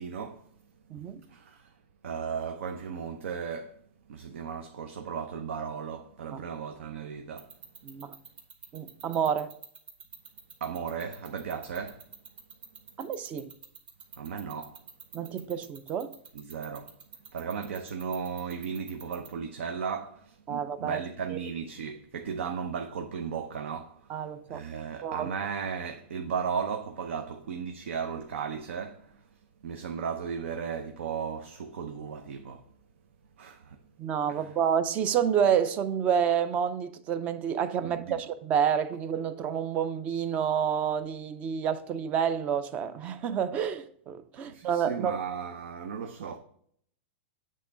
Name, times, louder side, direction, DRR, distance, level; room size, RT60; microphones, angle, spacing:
voice 1, 0.0-3.8 4.1-7.6 10.6-12.4 12.7-13.0 14.1-14.8 16.3-32.7 33.4-33.8 34.3-34.5 37.8-38.2 44.4-46.4, right 6 dB, 80° right, 0.7 m, -36 dB
voice 2, 0.9-1.2 6.3-6.4 7.8-8.1 8.7-9.5 13.0-13.5 15.1-16.1 20.5-21.0 21.3-21.4 24.1-24.6 25.0-25.3 34.0-45.1, right 8 dB, 20° right, 0.4 m, -29 dB
sound 1, 7.4-19.3, right 6 dB, 50° right, 1.5 m, -46 dB
8.4 x 3.7 x 5.4 m
supercardioid pair, 160°, 7 cm